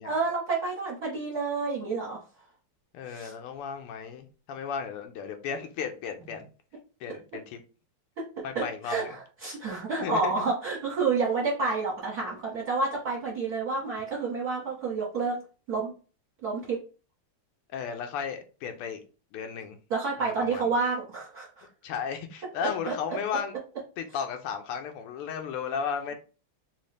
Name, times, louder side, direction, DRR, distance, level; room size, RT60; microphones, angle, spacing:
voice 1, 0.0-2.2 3.1-3.3 8.5-15.4 15.7-15.9 16.4-16.8 19.9-21.7 22.6-22.9, right 4 dB, 50° right, 1.4 m, -29 dB
voice 2, 2.9-6.4 7.0-7.6 8.4-9.1 10.0-10.5 17.7-19.0 19.3-19.8 20.2-20.7 21.8-23.5 24.0-26.1, left 7 dB, 85° left, 1.6 m, -34 dB
4.1 x 2.3 x 3.2 m
omnidirectional pair, 2.4 m